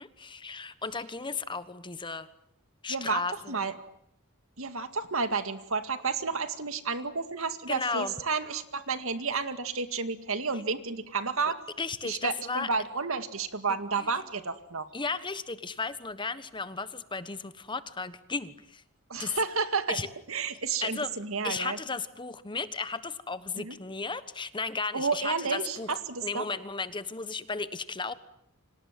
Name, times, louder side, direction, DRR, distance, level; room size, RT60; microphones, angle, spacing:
voice 1, 0.0-2.3 2.8-3.7 7.7-8.1 11.8-12.7 13.9-14.1 14.9-18.8 19.2-19.4 19.9-20.1 20.8-21.1 21.4-28.1, left 4 dB, 20° left, 13 dB, 1.2 m, -35 dB
voice 2, 2.9-3.2 3.5-3.7 4.6-11.6 12.0-14.9 19.1-20.0 20.3-21.8 23.6-23.8 24.9-26.5, right 4 dB, 65° right, 10 dB, 2.1 m, -31 dB
30.0 x 25.5 x 7.6 m, 0.73 s
head